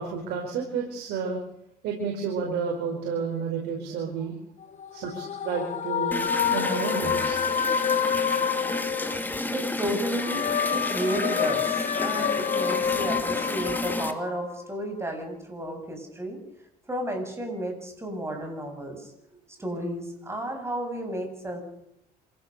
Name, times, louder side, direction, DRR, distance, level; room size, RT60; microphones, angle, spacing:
voice 1, 0.0-1.4 1.8-4.3 4.9-6.2 6.5-7.4 18.3-18.4, right 5 dB, 85° right, 1 dB, 5.0 m, -31 dB
sound 1, 4.6-9.6 10.0-14.7, left 8 dB, 45° left, 1.5 m, -28 dB
sound 2, 6.1-14.1, left 2 dB, 10° left, 2.4 m, -32 dB
voice 2, 9.5-10.4 10.7-16.4 16.9-19.1 19.6-21.6, right 1 dB, 15° right, 4 dB, 7.7 m, -32 dB
27.0 x 16.0 x 6.8 m, 0.78 s
cardioid pair, 110°, 17 cm